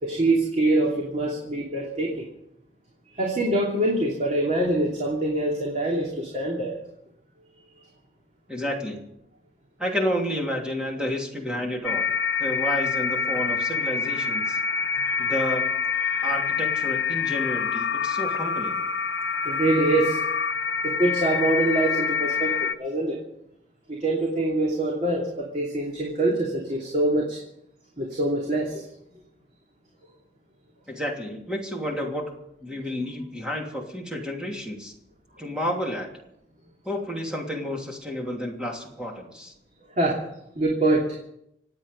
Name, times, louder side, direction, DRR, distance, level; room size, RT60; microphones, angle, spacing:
voice 1, 0.0-2.2 3.1-6.7 19.4-20.2 20.8-23.2 23.9-27.4 28.0-28.9 40.0-40.2 40.5-41.0, right 2 dB, 40° right, -2 dB, 2.9 m, -24 dB
voice 2, 8.5-9.0 9.8-12.1 12.4-14.6 15.2-15.7 16.2-18.8 30.9-32.3 32.6-34.9 35.4-36.1 36.8-39.5, equal, 5° right, -1 dB, 2.9 m, -30 dB
sound 1, 11.8-22.7, left 6 dB, 85° left, 0.7 m, -26 dB
26.5 x 8.9 x 5.3 m, 0.79 s
head